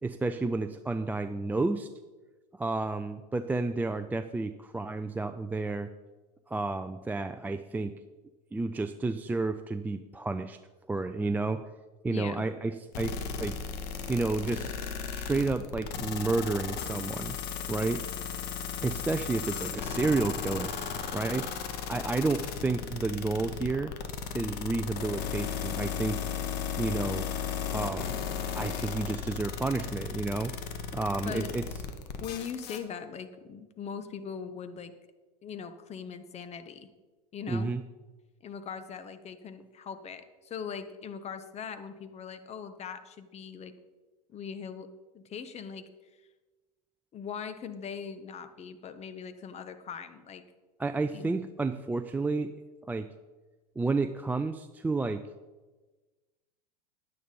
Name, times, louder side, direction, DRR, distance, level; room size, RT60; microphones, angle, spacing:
voice 1, 0.0-1.9 2.5-5.9 6.5-7.9 8.5-10.6 10.9-11.6 12.0-13.6 14.1-14.8 15.1-17.3 17.7-18.0 18.8-20.7 21.1-21.6 21.9-23.9 24.3-26.2 26.8-27.2 27.6-28.1 28.5-30.5 30.9-31.6 37.5-37.8 50.8-52.5 52.9-53.1 53.8-55.2, right 3 dB, 10° right, 8 dB, 0.4 m, -31 dB
voice 2, 12.1-12.4 31.2-31.5 32.2-34.9 35.4-36.9 37.3-37.7 38.4-43.7 44.3-45.9 47.1-50.4 51.1-51.3, left 7 dB, 30° left, 10 dB, 1.2 m, -40 dB
sound 1, 12.9-32.8, left 7 dB, 50° left, 1.5 m, -35 dB
10.5 x 9.4 x 5.4 m, 1.2 s
hypercardioid pair, 95°, 21 cm